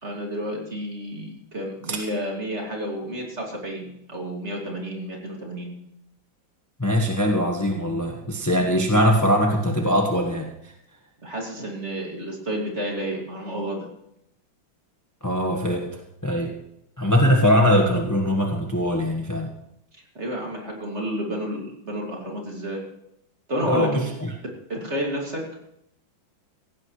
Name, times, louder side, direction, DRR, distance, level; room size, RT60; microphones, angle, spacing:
voice 1, 0.0-5.7 11.2-13.9 19.9-22.8 23.5-24.0 24.7-25.4, equal, 35° right, 0 dB, 2.7 m, -30 dB
voice 2, 6.8-10.7 15.2-16.5 17.0-19.5 23.7-24.3, equal, 10° left, 1 dB, 1.1 m, -22 dB
17.0 x 15.5 x 3.3 m, 0.78 s
omnidirectional pair, 2.2 m